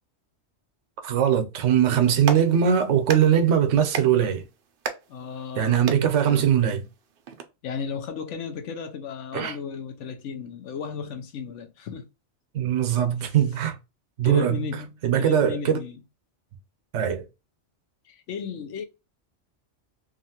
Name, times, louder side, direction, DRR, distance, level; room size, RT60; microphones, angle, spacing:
voice 1, 1.0-4.4 5.6-6.8 9.3-9.6 12.5-13.8 14.2-14.6 15.0-15.8 16.9-17.2, right 9 dB, 90° right, 0.9 m, -21 dB
Clapping, 2.0-7.4, right 6 dB, 60° right, 0.7 m, -37 dB
voice 2, 5.1-5.8 6.3-6.5 7.6-12.1 13.1-13.2 14.2-16.0 18.1-18.8, left 6 dB, 85° left, 1.0 m, -35 dB
2.8 x 2.4 x 2.7 m
omnidirectional pair, 1.2 m